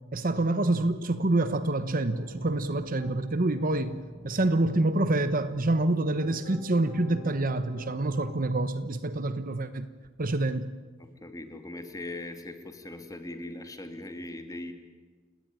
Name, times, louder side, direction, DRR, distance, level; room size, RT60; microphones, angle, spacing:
voice 1, 0.0-9.9 10.2-10.7, right 2 dB, 40° right, 12 dB, 1.0 m, -27 dB
Piano, 2.1-3.1 3.5-4.7 5.3-8.5, left 1 dB, 45° left, 4.7 m, -47 dB
voice 2, 11.0-14.7, left 2 dB, 15° left, 7 dB, 2.4 m, -40 dB
30.0 x 18.0 x 9.7 m, 1.4 s
head